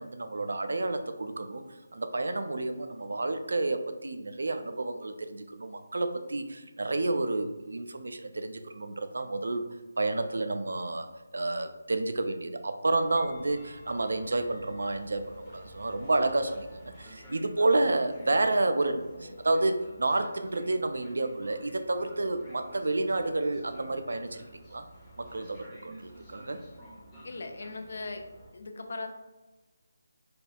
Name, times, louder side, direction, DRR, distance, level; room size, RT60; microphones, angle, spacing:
voice 1, 0.0-1.6 1.9-9.6 10.0-24.4 24.7-24.9 25.2-26.6, right 2 dB, 65° right, 8 dB, 0.3 m, -30 dB
Train, 13.0-28.5, equal, 10° left, 0.8 m, -51 dB
voice 2, 27.2-28.2 28.5-29.1, left 3 dB, 55° left, 5 dB, 0.4 m, -38 dB
4.4 x 2.3 x 2.3 m, 1.2 s
figure-of-eight pair, 155°, 0 cm